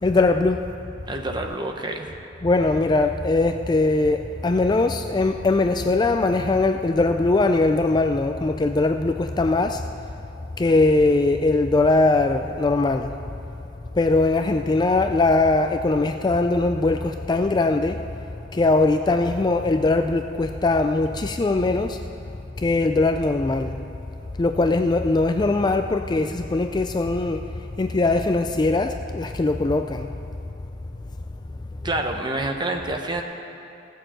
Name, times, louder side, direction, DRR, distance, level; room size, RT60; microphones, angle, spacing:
voice 1, 0.0-0.6 2.4-9.9 10.6-13.2 13.9-18.0 18.5-22.0 22.6-23.8 24.4-30.1, left 2 dB, 25° left, 7 dB, 0.3 m, -21 dB
voice 2, 1.1-2.1 31.8-33.2, right 2 dB, 25° right, 3 dB, 1.0 m, -27 dB
17.0 x 6.6 x 7.6 m, 3.0 s
head